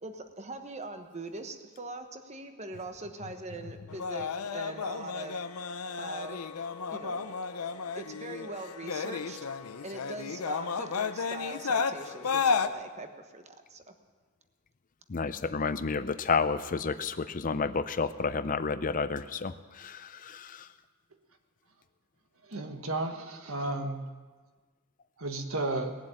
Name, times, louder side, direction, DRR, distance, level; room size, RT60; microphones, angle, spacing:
voice 1, 0.0-5.4 6.0-6.5 6.9-7.3 7.9-9.4 9.8-13.9, right 2 dB, 30° right, 7 dB, 1.1 m, -42 dB
sound 1, 3.9-12.7, left 5 dB, 90° left, 0.7 m, -33 dB
voice 2, 15.1-20.7, left 5 dB, 40° left, 12 dB, 0.5 m, -31 dB
voice 3, 22.5-24.1 25.2-25.9, right 2 dB, 70° right, 6 dB, 1.4 m, -33 dB
19.0 x 7.5 x 9.0 m, 1.4 s
head